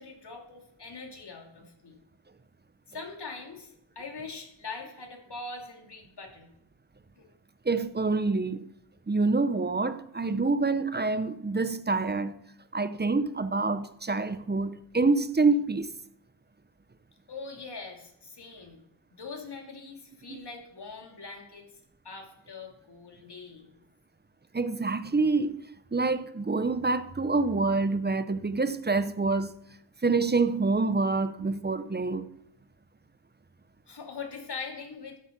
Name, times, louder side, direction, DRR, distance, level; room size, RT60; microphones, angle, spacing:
voice 1, 0.0-2.0 2.9-6.5 7.2-7.3 17.3-18.8 19.1-21.6 22.0-23.8 33.9-35.2, left 4 dB, 55° left, 2.8 m, -42 dB
voice 2, 7.7-8.7 9.1-12.3 12.7-15.9 20.3-20.4 24.5-25.6 25.9-29.5 30.0-32.3, right 3 dB, 20° right, 0.7 m, -26 dB
13.0 x 8.3 x 6.0 m
wide cardioid pair, 85°, 47 cm